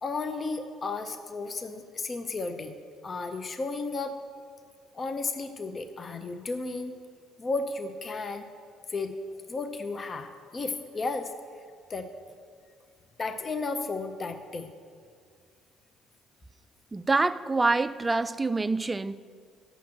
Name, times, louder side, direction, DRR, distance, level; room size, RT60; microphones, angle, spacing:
voice 1, 0.0-2.7 3.0-4.1 4.9-7.0 7.4-8.5 8.9-9.1 9.5-11.3 11.9-12.1 13.2-14.7, left 3 dB, 35° left, 0.6 m, -33 dB
voice 2, 16.9-19.2, right 3 dB, 20° right, 0.3 m, -26 dB
7.0 x 5.9 x 7.4 m
supercardioid pair, 75°, 0 cm